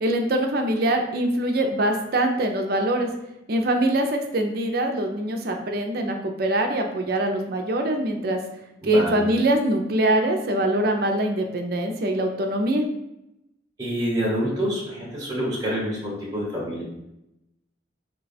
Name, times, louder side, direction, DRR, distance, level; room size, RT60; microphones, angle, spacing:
voice 1, 0.0-3.1 3.5-8.4 8.8-12.8, right 1 dB, 50° right, 3 dB, 0.5 m, -23 dB
voice 2, 8.8-9.2 13.8-16.8, equal, 20° right, -6 dB, 0.9 m, -27 dB
3.4 x 2.3 x 4.0 m, 0.87 s
head